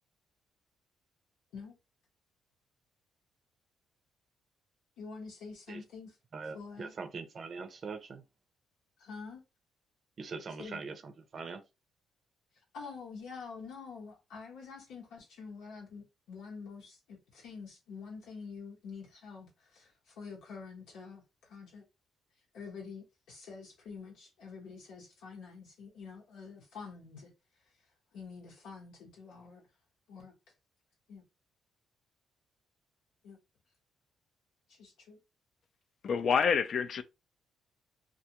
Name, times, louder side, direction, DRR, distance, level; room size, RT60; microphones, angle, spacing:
voice 1, 5.0-6.1 6.5-6.9 9.0-9.4 10.6-10.8 12.7-21.8 22.5-27.3 28.1-29.6 30.1-30.3 31.1-31.2 33.2-33.4 34.7-35.2, left 5 dB, 90° left, 1.0 m, -47 dB
voice 2, 6.3-8.2 10.2-11.6, right 4 dB, 45° right, 0.5 m, -42 dB
voice 3, 36.0-37.0, left 6 dB, 60° left, 0.3 m, -27 dB
2.4 x 2.2 x 2.8 m
cardioid pair, 90°, 0 cm